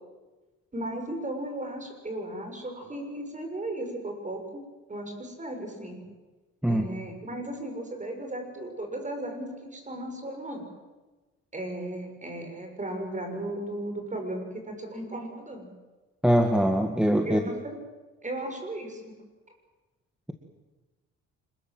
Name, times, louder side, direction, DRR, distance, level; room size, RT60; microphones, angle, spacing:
voice 1, 0.7-4.6 4.9-6.0 6.7-10.7 11.5-15.7 17.2-17.8 18.2-19.1, right 1 dB, 25° right, 4 dB, 7.1 m, -36 dB
voice 2, 16.2-17.4, equal, 5° right, 4 dB, 2.1 m, -22 dB
26.5 x 21.5 x 8.0 m, 1.2 s
cardioid pair, 90°, 30 cm